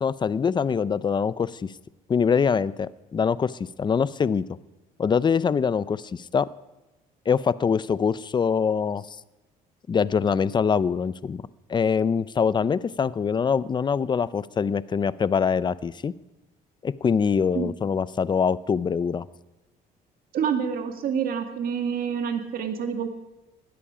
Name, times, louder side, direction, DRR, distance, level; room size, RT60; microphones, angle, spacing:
voice 1, 0.0-1.7 2.1-4.4 5.0-6.5 7.3-9.1 9.9-11.4 11.7-16.1 16.8-19.2, left 6 dB, 25° left, 17 dB, 0.6 m, -24 dB
voice 2, 20.3-23.1, right 7 dB, 60° right, 6 dB, 2.2 m, -27 dB
19.0 x 13.0 x 5.0 m, 1.1 s
cardioid pair, 110°, 17 cm